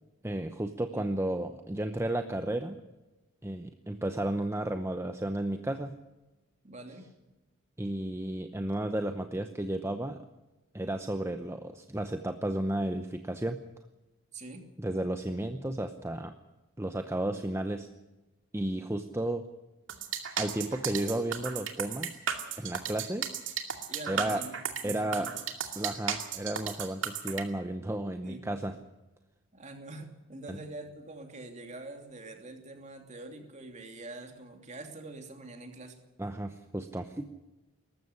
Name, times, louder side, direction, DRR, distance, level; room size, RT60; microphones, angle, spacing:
voice 1, 0.2-2.8 3.4-6.0 7.8-10.2 10.7-13.6 14.8-16.3 16.8-17.9 18.5-19.4 20.4-22.2 22.6-23.3 24.1-24.4 24.8-25.3 25.8-28.8 30.5-30.6 36.2-37.3, right 1 dB, 15° right, 7 dB, 0.8 m, -33 dB
voice 2, 6.6-7.1 14.3-14.6 23.9-24.5 24.8-25.3 28.2-28.4 29.5-36.0, right 2 dB, 35° right, 4 dB, 2.8 m, -45 dB
sound 1, 19.9-27.4, right 8 dB, 70° right, 2.4 m, -34 dB
19.5 x 14.5 x 9.7 m, 1.1 s
head